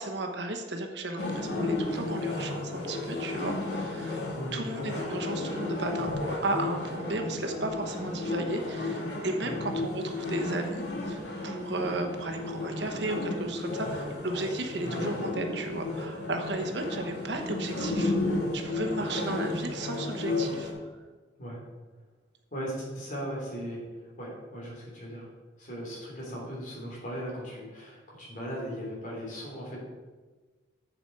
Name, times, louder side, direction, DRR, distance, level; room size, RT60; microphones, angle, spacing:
voice 1, 0.0-4.2 4.5-18.1 18.5-20.7, right 2 dB, 65° right, 3 dB, 1.0 m, -34 dB
sound 1, 1.2-20.7, left 2 dB, 70° left, 2.4 m, -33 dB
voice 2, 4.3-4.7 9.4-9.6 14.8-15.1 21.4-21.6 22.5-23.9 24.2-25.3 25.6-29.8, equal, 45° left, -3 dB, 3.1 m, -38 dB
7.9 x 7.4 x 4.5 m, 1.3 s
head